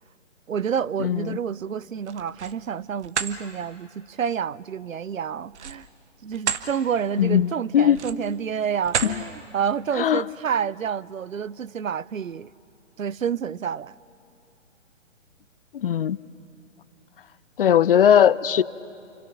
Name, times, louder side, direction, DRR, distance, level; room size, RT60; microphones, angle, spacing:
voice 1, 0.5-5.9 6.2-12.5 13.0-14.0, right 7 dB, 90° right, 0.6 m, -29 dB
voice 2, 1.0-1.4 7.2-8.0 9.0-9.1 10.0-10.2 15.7-16.2 17.6-18.6, left 9 dB, 45° left, 0.5 m, -19 dB
sound 1, 2.0-2.6 3.0-3.4 5.5-6.7 7.1-7.3 7.9-8.3 8.8-9.2, right 7 dB, 60° right, 1.3 m, -29 dB
28.5 x 26.0 x 5.9 m
figure-of-eight pair, 135°, 39 cm